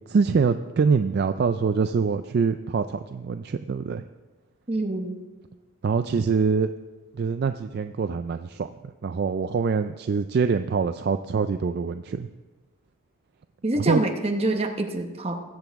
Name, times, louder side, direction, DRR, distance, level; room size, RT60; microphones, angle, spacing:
voice 1, 0.1-4.0 5.8-6.7 7.1-12.3 13.8-14.0, right 5 dB, 45° right, 9 dB, 0.3 m, -24 dB
voice 2, 4.7-5.2 13.6-15.4, right 2 dB, 25° right, 4 dB, 1.0 m, -26 dB
20.5 x 7.9 x 3.6 m, 1.2 s
head